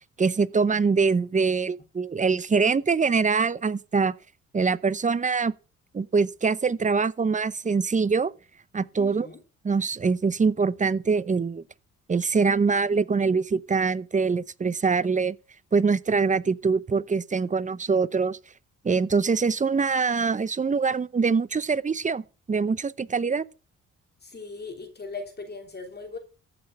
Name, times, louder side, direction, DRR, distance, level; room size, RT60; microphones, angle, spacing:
voice 1, 0.2-4.1 4.5-5.5 5.9-8.3 8.7-9.3 9.6-11.6 12.1-15.4 15.7-18.4 18.8-22.2 22.5-23.4, right 5 dB, 25° right, 0.7 m, -24 dB
voice 2, 9.0-9.4 24.2-26.2, left 4 dB, 35° left, 3.1 m, -39 dB
15.0 x 6.5 x 7.0 m
cardioid pair, 90°, 30 cm